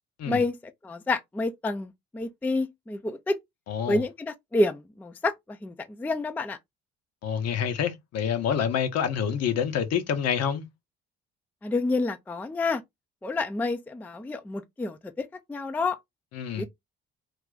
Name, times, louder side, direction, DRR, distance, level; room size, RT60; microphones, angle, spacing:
voice 1, 0.3-0.6 0.8-3.4 3.9-6.6 11.6-12.8 13.2-16.0 16.5-16.7, left 2 dB, 5° left, 0.4 m, -29 dB
voice 2, 3.7-4.0 7.2-10.6 16.3-16.7, left 8 dB, 50° left, 0.7 m, -27 dB
2.4 x 2.3 x 3.7 m
hypercardioid pair, 50°, 33 cm